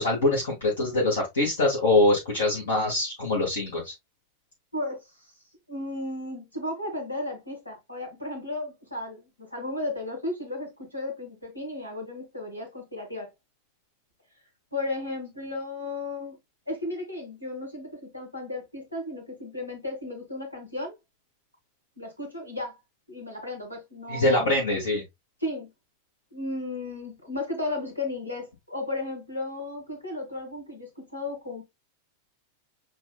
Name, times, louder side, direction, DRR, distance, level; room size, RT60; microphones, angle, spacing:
voice 1, 0.0-3.9 24.1-25.0, left 2 dB, 65° left, 1.6 m, -24 dB
voice 2, 4.7-5.1 5.7-13.3 14.7-16.4 16.7-20.9 22.0-22.8 23.1-24.5 25.4-25.7 26.3-31.6, left 2 dB, 85° left, 2.0 m, -34 dB
7.7 x 2.7 x 2.2 m
figure-of-eight pair, 90°, 0 cm